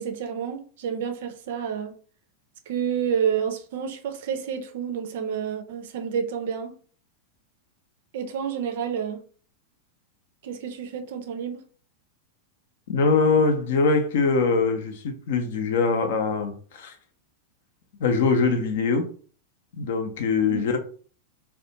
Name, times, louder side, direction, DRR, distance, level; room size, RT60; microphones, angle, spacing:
voice 1, 0.0-2.0 2.7-6.8 8.1-9.2 10.4-11.6 20.5-20.7, right 7 dB, 55° right, 0.4 m, -29 dB
voice 2, 12.9-16.9 18.0-19.1 19.8-20.8, left 4 dB, 55° left, 0.5 m, -22 dB
2.3 x 2.2 x 2.8 m
figure-of-eight pair, 90°, 0 cm